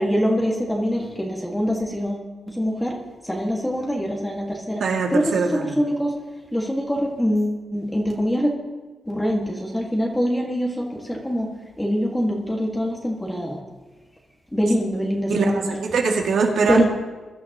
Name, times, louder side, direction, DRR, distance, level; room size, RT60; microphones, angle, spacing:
voice 1, 0.0-3.0 3.2-4.8 5.1-6.2 6.5-8.5 9.1-11.5 11.8-13.6 14.5-15.8 16.7-16.8, equal, 10° left, -1 dB, 1.8 m, -24 dB
voice 2, 4.8-5.7 15.3-15.5 15.8-16.8, right 4 dB, 70° right, 1 dB, 2.1 m, -21 dB
22.5 x 12.0 x 3.0 m, 1.3 s
cardioid pair, 100°, 0 cm